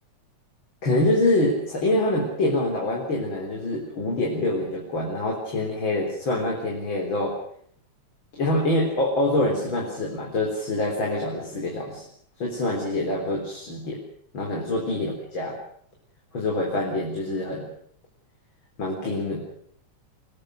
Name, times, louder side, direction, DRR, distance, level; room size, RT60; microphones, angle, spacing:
voice 1, 0.8-7.3 8.4-12.0 12.4-14.0 14.3-15.5 16.3-17.7 18.8-19.4, left 1 dB, 40° left, -1 dB, 4.7 m, -25 dB
24.5 x 19.5 x 6.6 m, 0.63 s
omnidirectional pair, 3.3 m